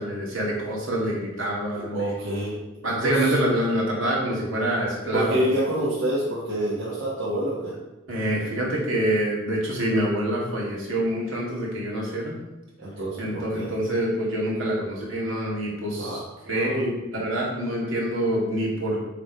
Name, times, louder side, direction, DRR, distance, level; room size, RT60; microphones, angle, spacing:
voice 1, 0.0-2.2 2.8-5.5 8.1-12.4 13.2-16.2 16.5-19.0, right 1 dB, 80° right, -4 dB, 2.3 m, -26 dB
voice 2, 1.7-2.6 2.8-3.4 5.1-7.7 12.8-13.7 16.0-16.8, right 1 dB, 65° right, -8 dB, 1.6 m, -28 dB
8.0 x 3.6 x 4.7 m, 1.0 s
head